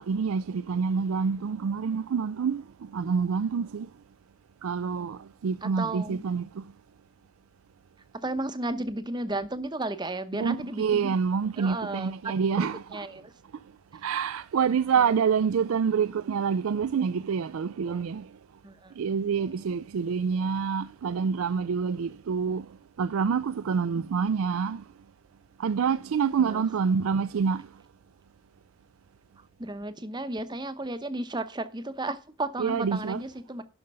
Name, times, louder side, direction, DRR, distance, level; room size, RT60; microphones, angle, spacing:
voice 1, 0.0-2.6 2.9-3.9 4.6-6.7 10.4-13.1 14.0-18.3 19.0-22.7 23.0-24.8 25.6-27.7 32.6-33.2, right 6 dB, 75° right, 0.4 m, -27 dB
voice 2, 5.6-6.2 8.2-11.1 11.6-13.3 15.0-15.2 15.4-15.5 17.9-18.0 18.6-18.9 26.4-26.6 29.4-33.6, right 2 dB, 20° right, 0.8 m, -34 dB
11.5 x 5.2 x 5.4 m
head